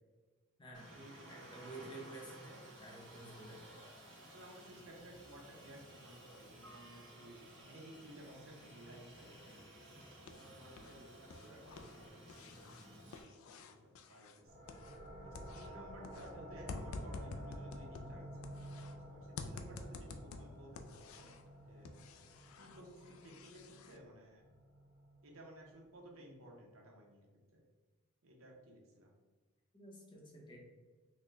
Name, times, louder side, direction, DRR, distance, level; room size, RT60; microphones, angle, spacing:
voice 1, 0.6-1.0 1.3-3.6 19.5-19.8 29.7-30.6, right 2 dB, 20° left, -2 dB, 0.7 m, -52 dB
Aircraft, 0.7-13.2, right 1 dB, 55° right, 1.3 m, -56 dB
voice 2, 1.3-2.1 2.5-2.6 4.0-10.0 10.3-12.5 13.3-13.8 14.1-14.5 15.3-18.8 19.1-21.3 21.7-21.9 22.6-24.4 25.2-27.3 27.5-27.6 28.2-29.1, right 1 dB, 75° right, 0 dB, 0.8 m, -57 dB
sound 1, 9.8-11.0 11.2-15.1 15.3-19.0 19.4-21.5 21.9-24.0, left 3 dB, 75° left, 0.3 m, -50 dB
sound 2, 14.5-25.8, equal, 30° right, 0.8 m, -52 dB
4.0 x 2.2 x 3.1 m, 1.3 s
head